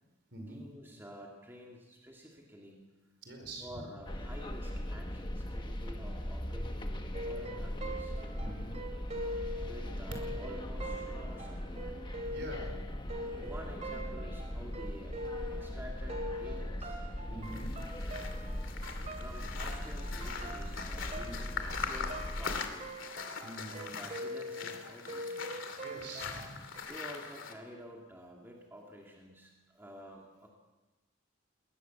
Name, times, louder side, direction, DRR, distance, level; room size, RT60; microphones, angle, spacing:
voice 1, 0.5-2.8 3.6-8.1 9.6-12.0 13.4-15.2 15.5-17.0 19.1-22.9 23.7-25.4 26.8-30.5, equal, 10° right, -1 dB, 2.3 m, -50 dB
voice 2, 3.2-3.7 8.4-8.8 12.3-12.7 17.3-17.7 21.2-21.3 23.4-23.8 25.8-26.4, right 1 dB, 55° right, 4 dB, 5.0 m, -44 dB
sound 1, 4.0-22.6, left 1 dB, 20° left, 1.3 m, -40 dB
sound 2, 7.1-15.8 16.1-26.8, equal, 30° right, 2.7 m, -43 dB
sound 3, 17.4-27.5, left 5 dB, 65° left, 2.5 m, -42 dB
21.5 x 19.5 x 7.1 m, 1.1 s
head